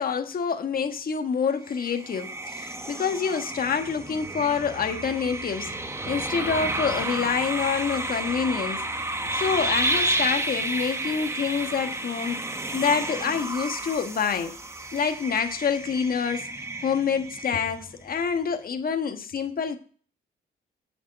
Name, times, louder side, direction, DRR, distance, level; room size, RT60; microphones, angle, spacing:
voice 1, 0.0-5.7 6.1-8.8 9.3-14.6 14.9-16.5 16.8-19.8, left 6 dB, 45° left, 1.4 m, -27 dB
sound 1, 1.7-18.0, right 2 dB, 15° right, 1.2 m, -31 dB
8.3 x 7.1 x 6.4 m
cardioid pair, 90°, 20 cm